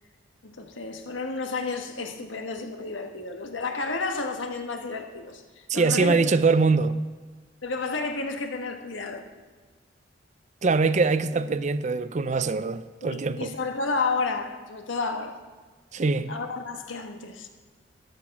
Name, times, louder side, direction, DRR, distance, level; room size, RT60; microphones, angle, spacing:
voice 1, 0.4-6.4 7.6-9.3 13.0-15.4 16.3-17.5, left 3 dB, 90° left, 1.4 m, -31 dB
voice 2, 5.7-7.0 10.6-13.5 15.9-16.3, right 4 dB, 40° right, 0.5 m, -23 dB
13.0 x 11.5 x 5.9 m
head